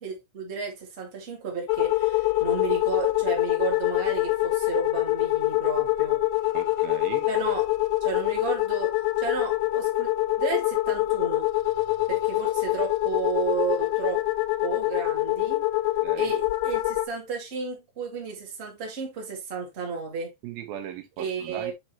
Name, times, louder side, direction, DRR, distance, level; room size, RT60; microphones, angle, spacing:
voice 1, 0.0-6.2 7.3-7.7 8.0-10.1 10.4-11.5 12.1-14.2 14.6-15.6 16.1-20.3 21.2-21.7, right 5 dB, 25° right, 1.5 m, -33 dB
sound 1, 1.7-17.1, left 17 dB, 90° left, 2.5 m, -25 dB
voice 2, 6.5-7.3 16.0-16.3 20.4-21.7, right 11 dB, 80° right, 2.7 m, -38 dB
7.7 x 4.5 x 2.9 m
omnidirectional pair, 4.3 m